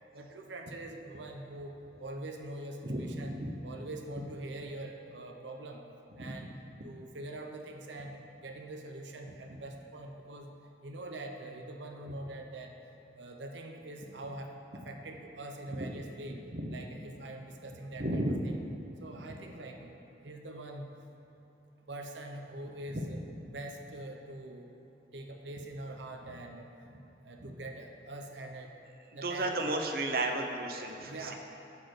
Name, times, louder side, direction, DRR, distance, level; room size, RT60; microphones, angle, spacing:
voice 1, 0.1-1.7 2.0-3.3 3.6-5.8 6.2-6.5 6.8-10.5 10.8-12.7 13.2-16.4 16.7-18.6 19.0-20.0 20.2-20.9 21.9-23.2 23.5-24.7 25.1-26.7 27.2-28.7 29.1-29.7 31.0-31.3, right 1 dB, 85° right, 3 dB, 0.8 m, -43 dB
voice 2, 2.8-3.5 6.3-6.4 9.5-9.6 16.3-16.8 18.0-18.4 27.4-27.5 29.2-31.3, right 1 dB, 55° right, 3 dB, 0.9 m, -34 dB
12.5 x 4.5 x 7.9 m, 2.9 s
head